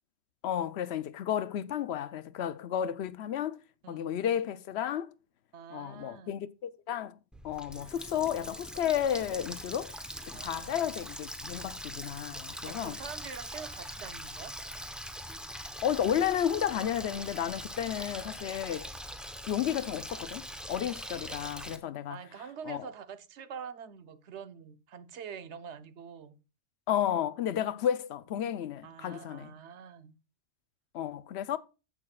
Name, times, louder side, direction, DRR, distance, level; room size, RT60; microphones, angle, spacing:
voice 1, 0.4-3.6 3.9-5.1 5.7-7.2 7.4-9.9 10.3-13.0 15.8-18.9 19.5-22.2 22.7-22.9 26.9-29.5 30.9-31.6, left 10 dB, 75° left, 0.9 m, -32 dB
voice 2, 5.5-6.4 10.3-11.0 12.7-14.6 21.4-21.7 22.1-26.4 28.8-30.2, right 7 dB, 80° right, 1.1 m, -45 dB
Water tap faucet, 7.3-21.8, equal, ahead, 0.7 m, -42 dB
15.0 x 6.2 x 2.3 m
omnidirectional pair, 1.1 m